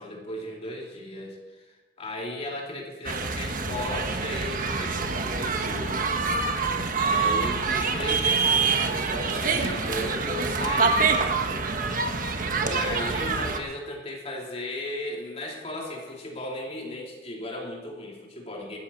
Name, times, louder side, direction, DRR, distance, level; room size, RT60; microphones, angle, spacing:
voice 1, 0.0-6.0 7.0-11.7 12.3-18.8, left 1 dB, 35° left, -1 dB, 3.2 m, -36 dB
sound 1, 3.0-13.6, right 4 dB, 50° right, 1.3 m, -26 dB
15.5 x 13.0 x 4.6 m, 1.3 s
head